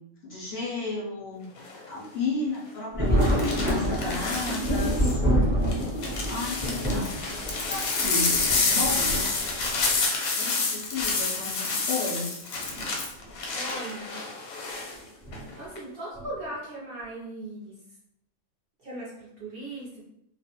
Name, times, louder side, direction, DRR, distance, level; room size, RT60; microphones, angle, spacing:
voice 1, 0.2-1.5 1.9-5.2 6.3-9.4 10.4-12.3, left 3 dB, 65° left, -5 dB, 0.6 m, -33 dB
sound 1, 1.6-1.9 3.2-5.1 5.7-14.9 15.3-15.8, left 4 dB, 90° left, 1.0 m, -29 dB
Thunder, 2.9-10.0 11.0-11.1 12.6-12.8 13.2-13.3 15.2-15.5 16.2-16.5, equal, 15° right, 0.3 m, -27 dB
voice 2, 13.5-14.4 15.5-17.8 18.8-20.0, right 1 dB, 60° right, -6 dB, 0.6 m, -38 dB
2.4 x 2.0 x 2.8 m, 0.80 s
omnidirectional pair, 1.4 m